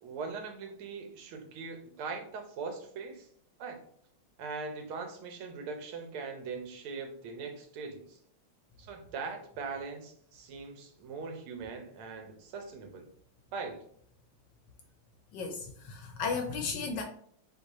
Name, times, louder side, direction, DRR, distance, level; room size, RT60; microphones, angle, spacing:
voice 1, 0.0-3.3 3.6-3.8 4.4-8.2 8.8-13.1 13.5-13.8, right 4 dB, 90° right, 4 dB, 1.7 m, -41 dB
voice 2, 15.3-17.0, left 4 dB, 75° left, 4 dB, 1.1 m, -34 dB
3.8 x 3.2 x 4.0 m, 0.63 s
omnidirectional pair, 2.3 m